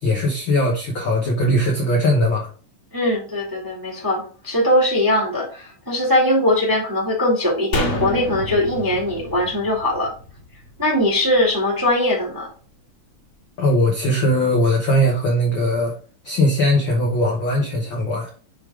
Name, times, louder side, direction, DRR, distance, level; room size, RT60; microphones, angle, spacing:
voice 1, 0.0-2.5 13.6-16.0 16.2-18.3, equal, 75° left, -1 dB, 1.1 m, -19 dB
voice 2, 2.9-10.1 10.8-12.5, left 1 dB, 10° right, -2 dB, 1.1 m, -20 dB
sound 1, 7.7-11.1 11.4-11.5, left 2 dB, 50° left, 2.0 m, -28 dB
6.4 x 3.6 x 4.8 m, 0.39 s
omnidirectional pair, 3.9 m